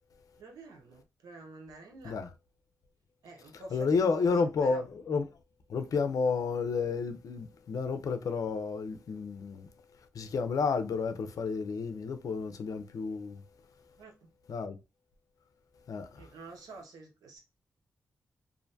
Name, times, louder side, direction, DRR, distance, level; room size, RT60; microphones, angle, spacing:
voice 1, 0.4-2.2 3.2-4.8 14.0-14.3 16.1-17.4, right 3 dB, 85° right, 0.7 m, -48 dB
voice 2, 3.7-5.2 5.7-9.7 10.1-13.4 14.5-14.8 15.9-16.2, left 5 dB, 70° left, 0.4 m, -31 dB
2.5 x 2.1 x 2.6 m
supercardioid pair, 45°, 6 cm